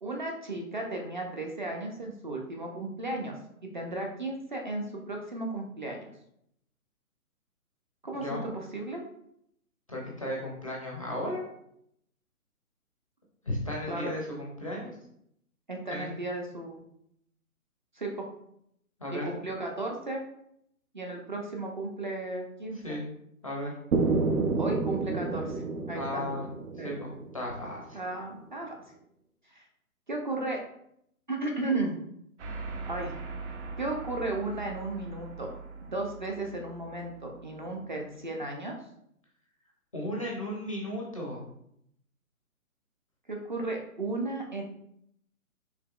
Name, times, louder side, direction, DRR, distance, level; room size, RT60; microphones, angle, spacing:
voice 1, 0.0-3.4 3.7-6.0 8.0-9.0 13.9-14.1 15.7-16.8 18.0-18.3 19.1-20.2 20.9-23.0 24.6-26.2 26.8-26.9 27.9-28.7 29.5-29.7 30.1-30.6 31.3-31.9 32.9-33.1 33.8-35.5 35.8-38.7 43.3-44.6, right 2 dB, 35° right, 1 dB, 0.4 m, -34 dB
voice 2, 8.1-8.4 9.9-11.4 13.4-14.9 15.9-16.1 19.0-19.2 22.8-23.0 23.4-23.7 25.9-26.5 26.8-28.0 39.9-41.4, left 1 dB, 25° left, -3 dB, 0.4 m, -35 dB
sound 1, 23.9-27.8, right 3 dB, 90° right, 0.7 m, -29 dB
sound 2, 32.4-38.2, right 4 dB, 55° right, 0.9 m, -42 dB
4.8 x 3.0 x 2.3 m, 0.75 s
hypercardioid pair, 145°, 43 cm